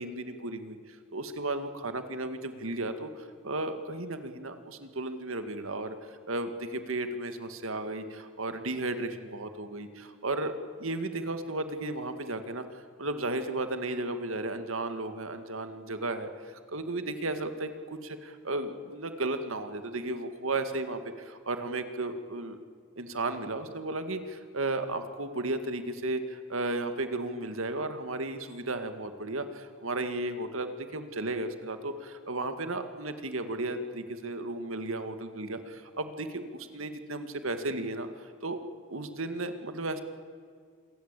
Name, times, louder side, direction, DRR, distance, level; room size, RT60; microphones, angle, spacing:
voice 1, 0.0-6.0 6.3-10.5 10.8-12.6 13.0-22.6 23.0-38.6 38.9-40.0, right 2 dB, 75° right, 8 dB, 2.2 m, -34 dB
26.5 x 22.5 x 8.5 m, 2.1 s
head